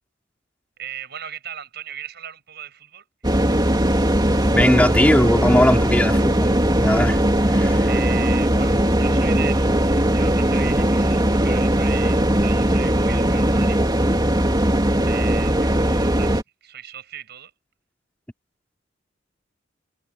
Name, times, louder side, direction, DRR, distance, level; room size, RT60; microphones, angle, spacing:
voice 1, 0.8-3.0 7.8-13.8 15.0-17.5, right 10 dB, 60° right, 7.3 m, -37 dB
sound 1, 3.2-16.4, right 1 dB, 20° right, 2.9 m, -19 dB
voice 2, 4.5-7.2 7.5-7.9, left 1 dB, 10° left, 3.8 m, -19 dB
head